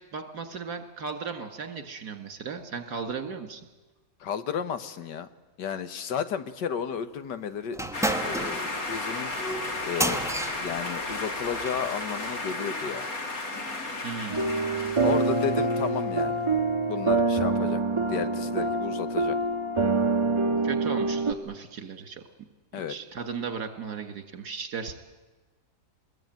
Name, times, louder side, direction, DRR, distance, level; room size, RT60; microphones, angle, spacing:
voice 1, 0.1-3.6 14.0-14.4 20.6-22.2 22.7-25.0, right 5 dB, 65° right, 8 dB, 2.7 m, -36 dB
voice 2, 4.2-5.3 5.6-7.8 8.2-9.3 9.8-10.3 10.6-13.0 15.0-16.4 16.9-17.8 18.1-19.4 22.7-22.9, left 7 dB, 75° left, 11 dB, 1.7 m, -33 dB
sound 1, 7.7-11.9, right 1 dB, 5° right, 0.6 m, -32 dB
sound 2, 7.9-16.2, left 2 dB, 55° left, 2.9 m, -34 dB
sound 3, 14.3-21.3, right 3 dB, 20° right, 1.1 m, -25 dB
24.5 x 20.5 x 9.2 m, 1.2 s
omnidirectional pair, 1.9 m